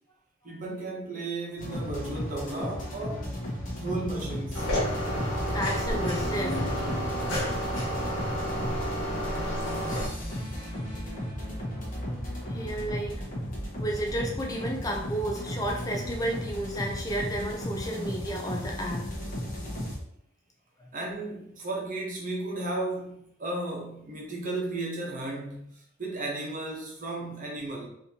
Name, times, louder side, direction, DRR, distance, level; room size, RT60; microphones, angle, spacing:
voice 1, 0.4-3.2 3.7-4.7 20.9-27.9, right 2 dB, 40° right, -2 dB, 0.9 m, -34 dB
sound 1, 1.6-20.0, equal, 40° left, 1.1 m, -35 dB
sound 2, 4.5-10.1, equal, 65° left, 1.4 m, -30 dB
voice 2, 5.5-7.8 12.5-13.2 13.8-19.0, right 1 dB, 20° left, 0 dB, 0.5 m, -32 dB
4.2 x 2.8 x 2.8 m, 0.72 s
head